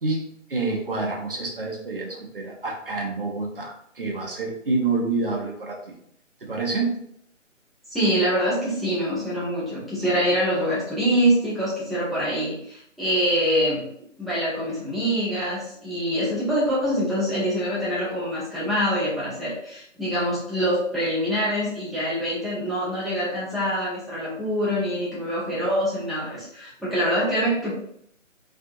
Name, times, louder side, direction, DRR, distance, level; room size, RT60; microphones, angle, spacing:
voice 1, 0.0-5.8 6.4-7.0, right 3 dB, 45° right, -1 dB, 0.8 m, -28 dB
voice 2, 7.9-13.8 14.2-27.7, equal, ahead, -10 dB, 0.5 m, -25 dB
3.4 x 2.6 x 2.6 m, 0.69 s
hypercardioid pair, 175°, 38 cm